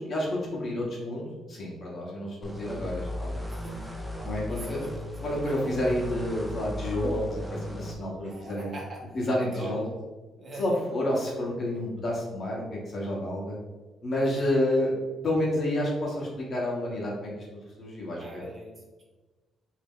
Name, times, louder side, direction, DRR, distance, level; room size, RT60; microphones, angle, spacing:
voice 1, 0.0-3.4 4.2-4.8 5.2-8.7 9.1-9.8 10.6-13.6 14.0-14.9 15.2-17.4 17.8-18.4, left 1 dB, 45° left, -4 dB, 1.1 m, -29 dB
sound 1, 2.4-7.9, left 1 dB, ahead, 0.4 m, -37 dB
voice 2, 3.5-4.1 4.5-5.0 5.3-5.7 8.2-9.1 9.5-9.9 10.4-10.7 14.3-14.8 18.2-19.0, right 1 dB, 45° right, -2 dB, 0.9 m, -43 dB
2.9 x 2.1 x 3.6 m, 1.2 s
cardioid pair, 90°, 0 cm